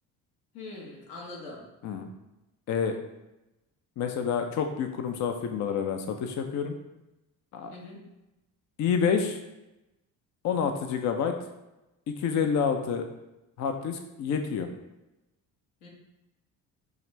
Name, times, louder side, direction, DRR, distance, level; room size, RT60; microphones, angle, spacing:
voice 1, 0.5-1.6 7.7-8.0 15.8-15.9, left 2 dB, 70° left, -2 dB, 1.3 m, -42 dB
voice 2, 4.0-6.7 7.5-7.7 8.8-9.4 10.4-11.3 12.2-13.0 13.6-14.7, left 6 dB, 35° left, 5 dB, 0.4 m, -28 dB
4.8 x 2.5 x 3.2 m, 0.96 s
hypercardioid pair, 50°, 50 cm